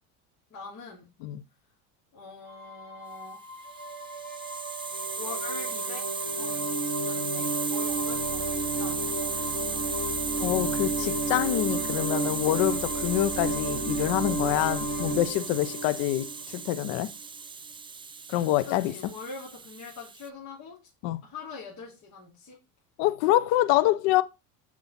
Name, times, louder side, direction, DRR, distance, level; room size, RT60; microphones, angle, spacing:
voice 1, 0.5-1.1 2.1-3.4 5.2-6.1 6.4-9.1 18.7-20.8 21.2-22.6, left 4 dB, 40° left, 2.9 m, -43 dB
sound 1, 2.5-16.9, right 2 dB, 20° left, 3.3 m, -33 dB
Hiss, 3.6-20.3, right 5 dB, 15° right, 0.4 m, -35 dB
voice 2, 10.4-17.1 18.3-18.9 21.0-21.2 23.0-24.2, left 15 dB, 75° left, 0.7 m, -26 dB
7.2 x 4.8 x 4.1 m
cardioid pair, 120°, 42 cm